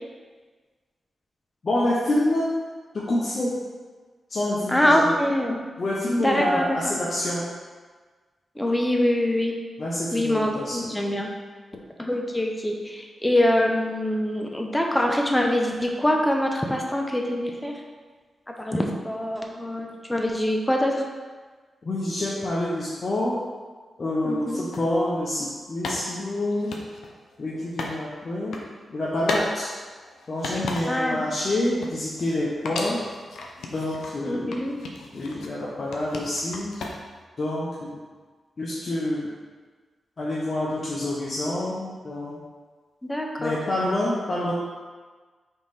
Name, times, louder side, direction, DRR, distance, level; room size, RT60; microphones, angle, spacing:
voice 1, 1.6-2.5 2.9-3.5 4.3-5.1 5.8-7.4 9.8-10.9 11.7-11.8 21.8-23.4 24.0-26.8 27.4-28.6 28.9-29.7 30.3-33.0 33.7-34.6 35.1-36.8 37.4-38.0 38.6-39.3 40.2-42.4 43.4-44.5, left 1 dB, 50° left, -6 dB, 0.7 m, -27 dB
voice 2, 4.7-5.6 6.2-6.8 8.6-9.5 10.1-11.3 12.0-17.8 18.5-21.1 24.2-24.6 30.9-31.3 34.2-34.8 43.0-43.6, left 1 dB, 10° left, 1 dB, 0.6 m, -24 dB
sound 1, 24.7-24.9 25.8-28.0 28.3-28.7 29.2-29.5 29.9-31.1 31.5-32.4 32.7-34.2 34.5-35.6 35.9-37.2, left 2 dB, 90° left, 0.5 m, -35 dB
3.7 x 3.0 x 4.1 m, 1.4 s
cardioid pair, 65°, 0 cm